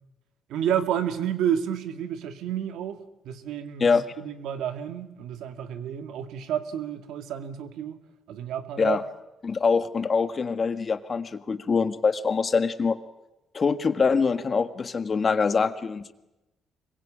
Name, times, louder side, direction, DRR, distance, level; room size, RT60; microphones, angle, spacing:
voice 1, 0.5-8.0 8.3-9.0, right 9 dB, 85° right, 2.1 m, -30 dB
voice 2, 9.4-13.0 13.5-16.1, left 5 dB, 40° left, 1.7 m, -24 dB
25.5 x 22.5 x 8.7 m
cardioid pair, 90°, 0 cm